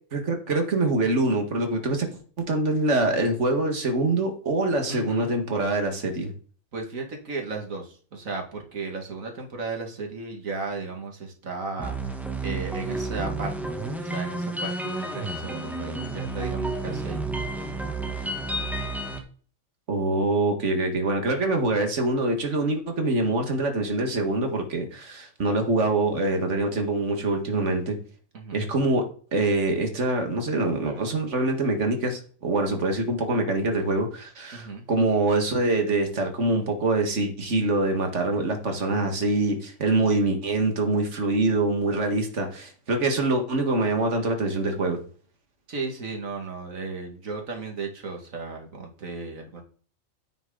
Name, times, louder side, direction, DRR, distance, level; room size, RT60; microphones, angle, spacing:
voice 1, 0.1-2.1 2.5-6.3 19.9-28.0 28.5-29.0 29.3-45.0, right 2 dB, 60° right, 4 dB, 2.1 m, -24 dB
voice 2, 4.9-5.3 6.7-12.2 12.4-13.7 14.0-17.2 28.3-28.6 34.5-34.9 45.7-49.6, right 3 dB, 75° right, 2 dB, 2.4 m, -35 dB
sound 1, 11.8-19.2, right 2 dB, ahead, 1.3 m, -31 dB
9.8 x 7.0 x 3.9 m, 0.43 s
omnidirectional pair, 1.4 m